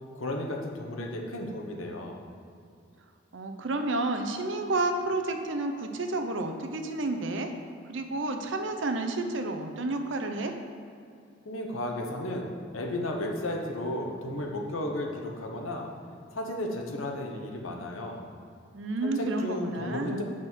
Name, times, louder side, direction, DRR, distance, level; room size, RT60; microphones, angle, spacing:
voice 1, 0.1-2.2 11.4-15.9 16.3-18.2 19.0-20.2, left 1 dB, 85° left, 1 dB, 1.1 m, -34 dB
voice 2, 3.3-7.5 7.9-10.5 18.7-20.2, right 2 dB, 65° right, 6 dB, 0.7 m, -30 dB
7.7 x 6.0 x 4.5 m, 2.5 s
head